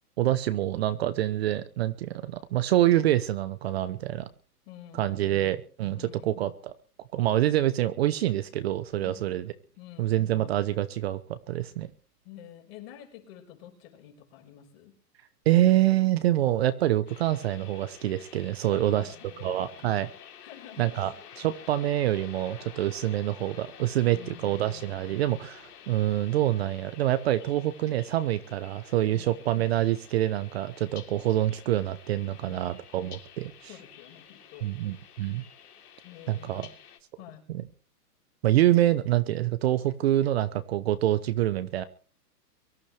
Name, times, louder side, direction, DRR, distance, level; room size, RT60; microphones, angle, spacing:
voice 1, 0.2-4.3 4.9-6.7 7.1-9.5 10.0-11.9 15.5-19.1 19.4-20.1 20.8-21.1 21.4-33.7 34.6-35.4 36.3-36.7 37.5-37.6 38.4-41.8, right 13 dB, 40° right, 13 dB, 0.9 m, -26 dB
voice 2, 4.6-5.6 5.9-6.4 9.0-9.4 9.8-10.2 12.2-14.9 18.7-19.9 20.4-21.5 24.1-25.0 29.1-29.4 32.2-32.8 33.7-34.7 36.0-36.8 37.2-37.5, left 12 dB, 35° left, 3 dB, 5.3 m, -48 dB
sound 1, 17.1-37.0, left 9 dB, 70° left, 3.6 m, -50 dB
23.5 x 14.0 x 3.4 m, 0.40 s
hypercardioid pair, 150°, 49 cm